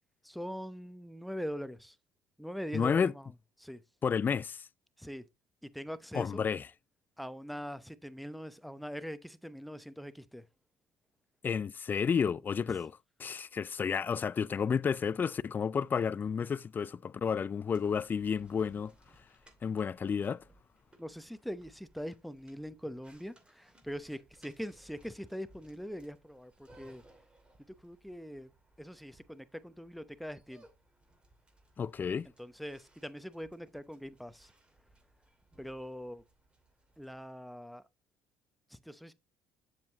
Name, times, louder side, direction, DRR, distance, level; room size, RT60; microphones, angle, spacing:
voice 1, 0.2-2.0 2.4-3.3 3.6-3.8 5.0-5.2 5.6-6.4 7.2-10.4 21.0-27.0 27.8-28.5 28.8-30.6 32.4-34.5 35.6-36.2 37.0-37.8 38.7-39.1, equal, ahead, 0.8 m, -42 dB
voice 2, 2.7-3.1 4.0-4.7 6.1-6.7 11.4-12.9 13.2-18.9 19.6-20.4 31.8-32.3, left 6 dB, 35° left, 0.4 m, -31 dB
sound 1, 17.7-37.3, right 1 dB, 20° right, 2.6 m, -64 dB
7.5 x 7.5 x 2.9 m
supercardioid pair, 70°, 6 cm